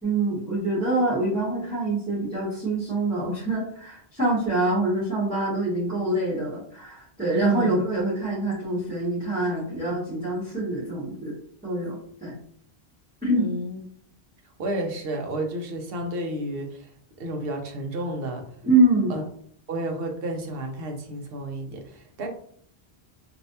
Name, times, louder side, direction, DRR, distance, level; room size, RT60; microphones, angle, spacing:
voice 1, 0.0-11.3 11.6-12.3 13.2-13.5 18.6-19.1, right 2 dB, 10° right, -13 dB, 1.4 m, -25 dB
voice 2, 7.3-7.8 13.4-13.8 14.6-16.9 17.2-18.4 19.1-19.2 19.7-22.3, right 1 dB, 65° right, 3 dB, 0.8 m, -31 dB
3.2 x 2.6 x 2.7 m, 0.62 s
omnidirectional pair, 1.1 m